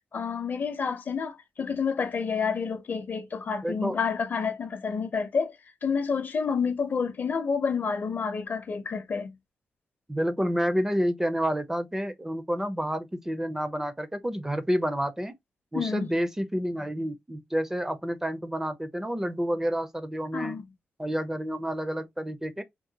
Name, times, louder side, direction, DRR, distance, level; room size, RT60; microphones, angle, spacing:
voice 1, 0.1-5.6 5.8-9.4 15.7-16.1 20.3-20.7, left 5 dB, 50° left, 0.6 m, -29 dB
voice 2, 3.6-4.0 10.1-15.3 15.7-20.6 21.0-22.6, equal, 10° right, 0.4 m, -29 dB
3.6 x 2.1 x 2.7 m
wide cardioid pair, 130°, 4 cm